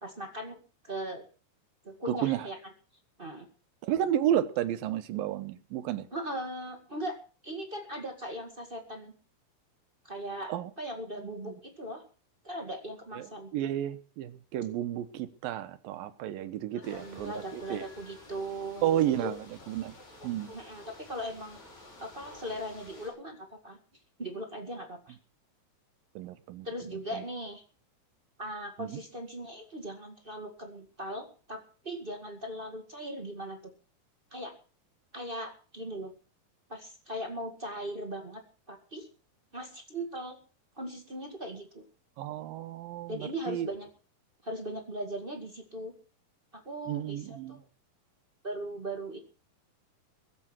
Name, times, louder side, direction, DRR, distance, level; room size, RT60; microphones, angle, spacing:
voice 1, 0.0-0.6 0.8-1.2 1.8-2.6 3.2-3.5 6.1-9.1 10.0-12.0 12.4-13.5 16.7-18.9 19.2-19.4 20.5-21.6 22.0-23.8 24.2-25.1 26.6-27.6 28.4-33.6 34.3-34.5 35.1-36.1 36.7-38.4 38.7-39.1 39.5-40.4 40.8-41.8 43.1-43.9 44.4-45.9 46.5-47.6 48.4-49.2, right 1 dB, 30° right, 0.9 m, -39 dB
voice 2, 2.1-2.5 3.8-6.1 10.5-10.7 11.5-11.6 13.1-13.3 13.5-17.8 18.8-20.0 20.2-20.5 26.2-27.2 28.8-29.0 42.2-43.7 46.9-47.6, right 11 dB, 75° right, 2.5 m, -32 dB
sound 1, 16.8-23.1, left 1 dB, 45° left, 7.2 m, -51 dB
22.5 x 7.6 x 6.2 m
omnidirectional pair, 4.5 m